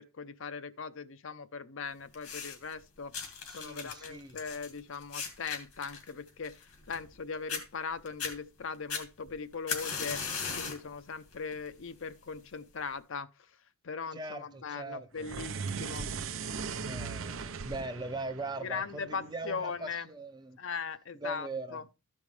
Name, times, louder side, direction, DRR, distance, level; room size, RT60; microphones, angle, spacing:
voice 1, 0.0-3.1 3.5-13.3 13.8-16.1 18.6-20.1 20.6-21.8, left 5 dB, 60° left, 0.5 m, -39 dB
sound 1, 2.1-2.7 3.1-7.2 7.5-7.6 8.1-8.3 8.9-10.9 11.3-11.7 12.5-12.6, left 6 dB, 90° left, 2.1 m, -38 dB
voice 2, 3.4-4.4 14.1-15.3 16.8-20.6 21.1-21.8, right 2 dB, 20° right, 0.5 m, -40 dB
sound 2, 15.2-19.6, right 5 dB, 65° right, 0.6 m, -39 dB
14.0 x 5.4 x 3.2 m
head